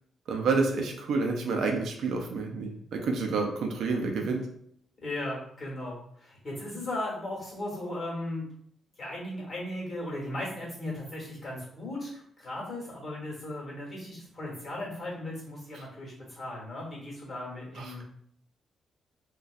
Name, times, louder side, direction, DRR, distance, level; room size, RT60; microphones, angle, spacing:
voice 1, 0.3-4.4 17.8-18.0, right 4 dB, 70° right, 2 dB, 0.5 m, -29 dB
voice 2, 5.0-8.4 9.0-18.0, left 1 dB, 30° left, -4 dB, 1.4 m, -37 dB
4.0 x 2.3 x 2.4 m, 0.66 s
cardioid pair, 160°, 0 cm